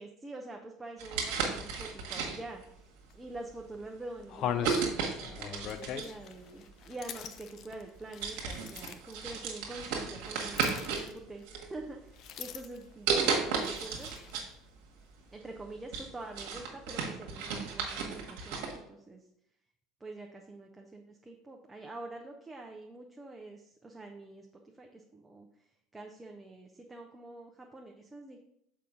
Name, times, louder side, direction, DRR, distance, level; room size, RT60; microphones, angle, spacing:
voice 1, 0.0-2.9 3.1-12.0 12.4-14.1 15.3-19.2 20.0-24.5 24.8-25.5 25.9-28.4, right 2 dB, 15° right, 1 dB, 0.7 m, -45 dB
sound 1, 1.0-2.6 3.4-3.6 4.6-6.2 7.3-7.4 7.8-8.0 8.2-11.1 11.5-12.2 13.1-14.5 14.8-14.9 15.4-18.8, right 5 dB, 60° right, 1.5 m, -34 dB
sound 2, 3.1-3.2 3.7-3.8 4.3-9.2 10.5-11.4 12.1-12.9 13.6-14.4, left 9 dB, 50° left, 0.5 m, -40 dB
6.8 x 5.0 x 3.8 m, 0.78 s
figure-of-eight pair, 70°, 0 cm